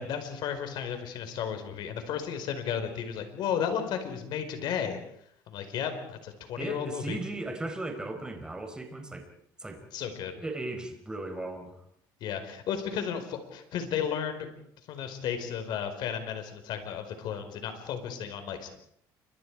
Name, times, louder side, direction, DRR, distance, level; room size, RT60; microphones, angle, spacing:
voice 1, 0.0-5.0 5.5-7.2 9.9-10.4 12.2-14.5 14.9-18.7, left 8 dB, 65° left, 7 dB, 4.8 m, -33 dB
voice 2, 6.6-9.3 9.6-9.8 10.3-11.7, right 2 dB, 10° right, 5 dB, 4.5 m, -36 dB
29.5 x 25.0 x 4.9 m, 0.68 s
cardioid pair, 125°, 8 cm